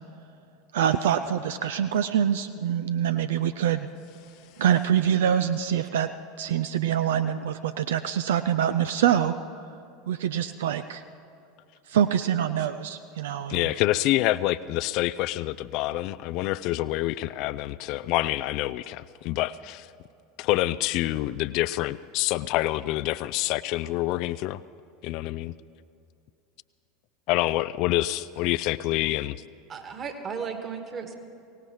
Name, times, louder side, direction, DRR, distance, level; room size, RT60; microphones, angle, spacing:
voice 1, 0.7-3.9 4.6-6.1 6.4-9.3 10.1-11.0 11.9-13.7, right 9 dB, 65° right, 11 dB, 0.4 m, -25 dB
voice 2, 13.5-19.9 20.4-24.6 25.0-25.5 27.3-29.4, left 16 dB, 50° left, 15 dB, 0.3 m, -27 dB
voice 3, 29.7-31.1, right 6 dB, 35° right, 5 dB, 1.7 m, -35 dB
23.0 x 17.5 x 3.1 m, 2.5 s
figure-of-eight pair, 75°, 0 cm